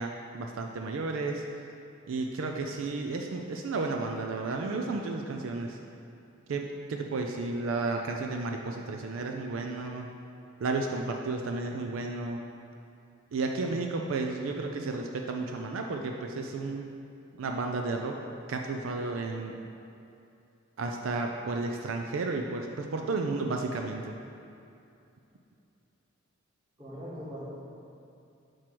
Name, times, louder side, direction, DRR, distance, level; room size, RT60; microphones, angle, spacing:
voice 1, 0.0-1.4 2.1-5.8 6.5-10.1 10.6-12.4 13.3-16.9 17.4-18.2 18.5-19.5 20.8-24.1, right 3 dB, 75° right, 2 dB, 0.4 m, -32 dB
voice 2, 26.8-27.4, equal, 20° right, -7 dB, 1.5 m, -40 dB
4.7 x 4.5 x 6.0 m, 2.7 s
head